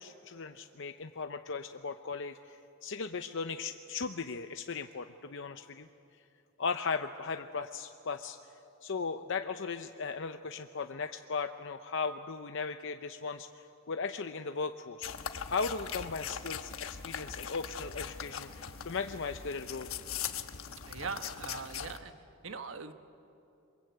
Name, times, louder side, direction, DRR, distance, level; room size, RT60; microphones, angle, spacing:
voice 1, 0.0-5.9 6.6-8.4 8.8-15.1 15.5-18.5 18.8-19.9, left 4 dB, 65° left, 7 dB, 0.7 m, -37 dB
sound 1, 15.0-22.0, left 7 dB, 85° left, 1.2 m, -41 dB
voice 2, 20.9-22.1 22.4-22.9, right 4 dB, 70° right, 8 dB, 1.3 m, -41 dB
27.5 x 23.0 x 8.1 m, 2.7 s
head